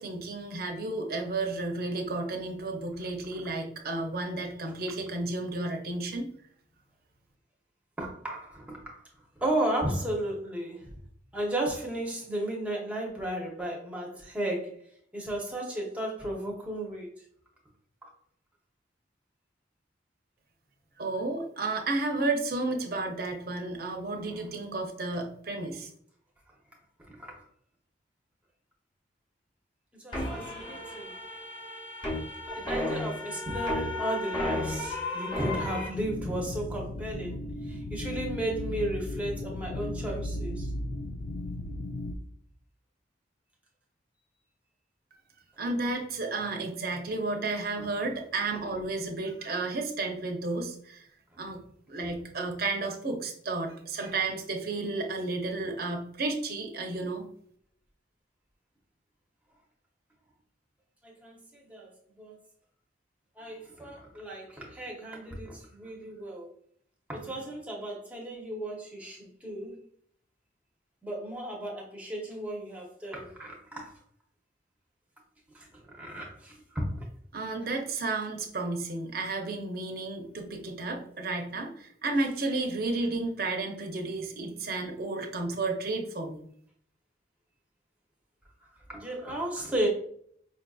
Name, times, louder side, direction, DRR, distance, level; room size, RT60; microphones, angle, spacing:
voice 1, 0.0-6.3 21.0-25.9 45.6-51.0 51.4-51.6 51.9-57.3 77.3-86.4, right 3 dB, 55° right, 2 dB, 0.6 m, -32 dB
voice 2, 8.0-9.0 9.4-11.0 11.3-14.8 15.1-17.1 18.0-18.1 27.1-27.4 30.0-31.1 32.5-37.4 37.7-40.7 47.8-47.9 61.0-61.9 62.2-62.4 63.4-66.5 67.1-69.8 71.0-73.9 75.5-77.0 88.9-89.9, right 1 dB, 10° right, -2 dB, 0.7 m, -34 dB
sound 1, 30.1-35.9, left 1 dB, 25° left, 0.9 m, -33 dB
sound 2, 35.9-42.1, left 1 dB, 55° left, 0.3 m, -36 dB
5.0 x 2.5 x 2.3 m, 0.64 s
head